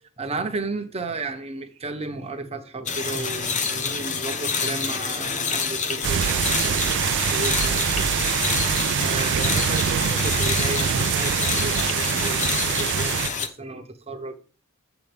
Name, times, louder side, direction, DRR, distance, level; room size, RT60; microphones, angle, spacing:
voice 1, 0.2-8.1 9.0-14.3, right 3 dB, 30° right, 1.0 m, -33 dB
sound 1, 2.9-13.5, left 5 dB, 35° left, 0.8 m, -27 dB
sound 2, 6.0-13.3, right 9 dB, 60° right, 0.4 m, -24 dB
8.0 x 6.9 x 3.5 m
head